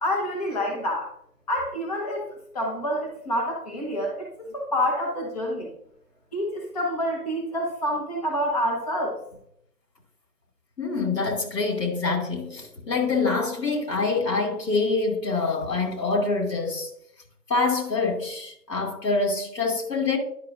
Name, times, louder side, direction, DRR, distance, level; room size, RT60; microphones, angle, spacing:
voice 1, 0.0-1.1 1.5-5.7 6.3-9.2, equal, 25° left, 0.8 m, -28 dB
voice 2, 10.8-16.9 17.5-20.2, left 3 dB, 80° left, 2.6 m, -25 dB
10.0 x 5.8 x 2.5 m
figure-of-eight pair, 160°, 49 cm